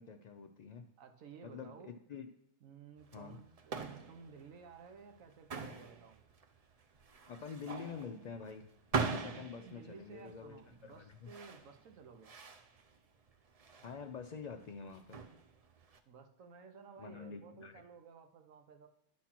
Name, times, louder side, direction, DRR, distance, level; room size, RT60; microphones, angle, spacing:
voice 1, 0.0-0.8 1.4-2.3 3.1-3.4 7.3-11.3 13.8-15.2 17.0-17.8, left 6 dB, 75° left, 5 dB, 0.3 m, -47 dB
voice 2, 1.0-1.9 2.6-6.2 9.6-12.3 16.1-18.9, right 5 dB, 80° right, 6 dB, 1.3 m, -55 dB
sound 1, 3.0-16.0, right 4 dB, 45° right, 0.5 m, -43 dB
10.5 x 4.2 x 5.9 m, 0.76 s
omnidirectional pair, 1.4 m